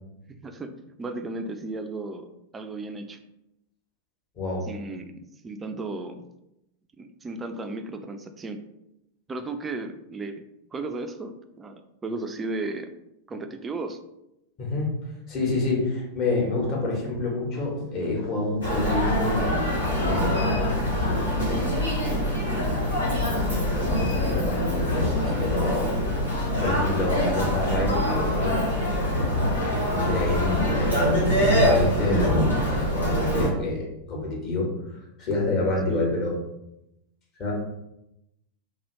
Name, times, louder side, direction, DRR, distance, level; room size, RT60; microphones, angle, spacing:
voice 1, 0.4-2.3 2.5-3.2 4.6-6.2 7.0-8.6 9.3-10.4 10.7-12.9 13.3-14.0 22.5-22.7 35.9-36.1, right 2 dB, 15° right, 7 dB, 0.3 m, -35 dB
voice 2, 14.6-14.9 15.3-21.6 22.6-25.9 26.5-28.6 28.8-29.0 29.7-36.3 37.4-37.5, left 2 dB, 35° left, -3 dB, 1.1 m, -28 dB
Human voice, 18.6-33.5, equal, 85° left, 0.9 m, -24 dB
2.7 x 2.6 x 3.0 m, 0.86 s
figure-of-eight pair, 90°, 0 cm